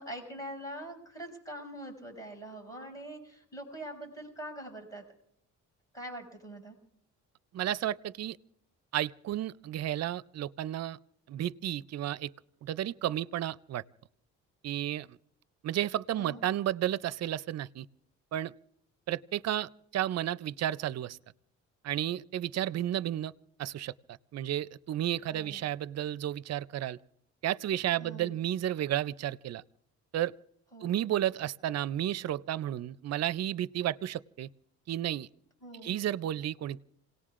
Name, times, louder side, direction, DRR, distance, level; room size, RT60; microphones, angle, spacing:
voice 1, 0.0-5.0 5.9-6.7 16.2-16.4 25.3-25.6 28.0-28.3 30.7-31.0 35.6-36.0, right 1 dB, 10° left, 7.0 m, -43 dB
voice 2, 7.5-8.4 8.9-11.0 11.3-12.3 12.6-13.8 14.6-15.2 15.6-17.9 18.3-18.5 19.1-21.2 21.8-23.3 23.6-27.0 27.4-29.6 30.1-30.3 30.8-34.5 34.9-35.3 35.8-36.8, right 12 dB, 60° right, 0.5 m, -32 dB
29.0 x 18.0 x 2.5 m
cardioid pair, 90°, 30 cm